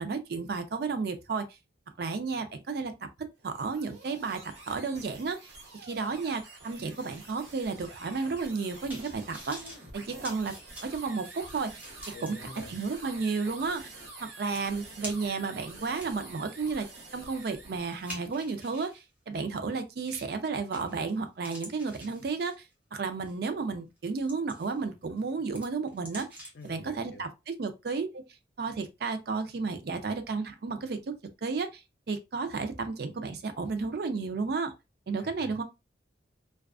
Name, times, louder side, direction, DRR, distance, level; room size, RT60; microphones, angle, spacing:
voice 1, 0.0-1.5 2.0-2.9 3.4-4.4 4.7-5.4 5.8-9.6 9.9-10.6 10.8-11.8 12.2-12.4 12.7-13.9 14.2-16.9 17.1-28.2 28.6-31.1 31.4-34.7 35.1-35.6, right 4 dB, 55° right, 0.4 m, -32 dB
sound 1, 3.4-18.0, right 2 dB, 85° right, 1.0 m, -48 dB
sound 2, 8.4-12.3 12.8-12.9 14.1-14.2 14.5-15.4 15.9-19.0 20.1-20.4 20.7-21.1 21.4-22.7 23.3-23.5 24.0-24.8 25.2-26.7 27.0-27.1, equal, 10° right, 0.7 m, -46 dB
voice 2, 12.1-12.8 26.5-27.2 35.2-35.6, left 2 dB, 65° left, 0.6 m, -47 dB
2.4 x 2.3 x 2.3 m
head